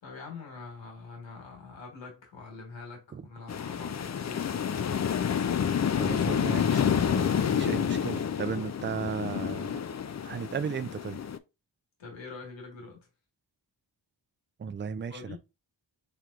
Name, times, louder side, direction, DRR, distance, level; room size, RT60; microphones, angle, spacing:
voice 1, 0.0-5.0 12.0-13.1 15.1-15.4, left 4 dB, 80° left, 1.5 m, -44 dB
sound 1, 3.5-11.4, left 8 dB, 40° left, 0.5 m, -29 dB
voice 2, 5.9-9.7 10.2-11.2 14.6-15.4, right 6 dB, 25° right, 0.4 m, -35 dB
4.5 x 3.4 x 2.5 m
cardioid pair, 45°, 45 cm